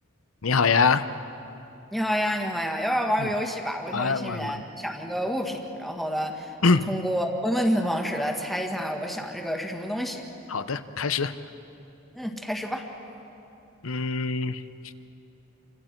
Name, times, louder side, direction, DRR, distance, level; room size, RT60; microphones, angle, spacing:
voice 1, 0.4-1.0 3.2-3.3 3.9-4.5 6.6-6.8 10.5-11.3 13.8-14.6, left 4 dB, 85° left, 11 dB, 0.8 m, -24 dB
voice 2, 1.9-10.2 12.1-12.9, equal, ahead, 1 dB, 1.9 m, -28 dB
29.5 x 25.5 x 4.6 m, 2.9 s
head